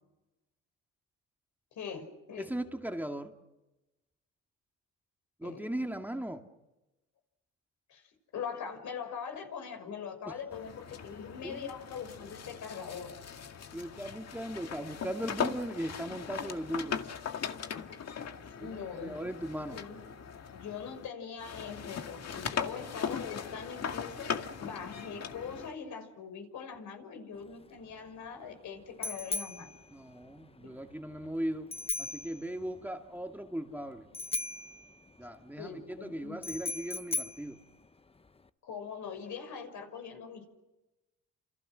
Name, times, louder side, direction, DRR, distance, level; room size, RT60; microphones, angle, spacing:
voice 1, 1.7-2.5 5.4-5.9 7.9-8.0 8.3-13.1 18.5-19.2 19.7-20.0 20.5-24.3 24.6-29.7 30.6-30.8 35.6-36.5 38.6-40.5, left 6 dB, 75° left, 6 dB, 6.2 m, -42 dB
voice 2, 2.4-3.3 5.4-6.5 10.3-10.4 11.4-11.7 13.7-17.0 18.6-19.8 29.9-31.7 32.0-34.1 35.2-37.6, right 1 dB, 5° right, 4 dB, 2.2 m, -38 dB
sound 1, 10.5-21.1 21.4-25.7, left 7 dB, 55° left, 2.1 m, -39 dB
Bicycle bell, 27.3-38.5, left 3 dB, 20° left, 0.9 m, -40 dB
29.5 x 28.0 x 6.3 m, 1.0 s
cardioid pair, 90°, 30 cm